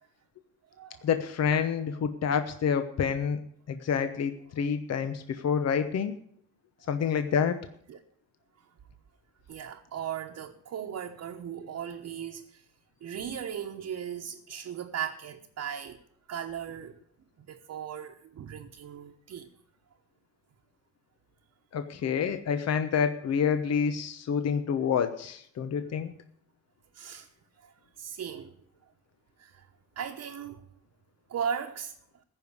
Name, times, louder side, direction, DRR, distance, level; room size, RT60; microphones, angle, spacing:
voice 1, 1.0-3.4 3.7-6.2 6.9-7.6 21.7-26.1, left 7 dB, 55° left, 1.0 m, -28 dB
voice 2, 9.5-12.6 13.0-16.0 16.3-17.0 17.4-19.5 26.9-27.3 27.6-28.5 29.4-29.7 30.0-30.6 31.3-31.9, right 8 dB, 60° right, 1.1 m, -37 dB
15.0 x 5.4 x 9.6 m
cardioid pair, 90°, 30 cm